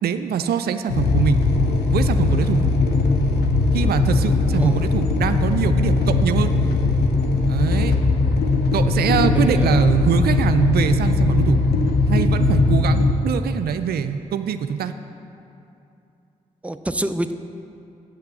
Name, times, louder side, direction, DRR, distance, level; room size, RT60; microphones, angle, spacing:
voice 1, 0.0-1.4 1.9-2.6 3.7-6.6 7.5-8.0 8.7-11.6 12.1-14.9, right 8 dB, 70° right, 9 dB, 0.4 m, -23 dB
sound 1, 0.9-13.1, left 3 dB, 75° left, 0.8 m, -19 dB
voice 2, 4.6-4.9 9.3-9.9 16.6-17.3, right 1 dB, 10° right, 9 dB, 0.5 m, -26 dB
8.3 x 5.8 x 7.5 m, 2.7 s
hypercardioid pair, 40°, 17 cm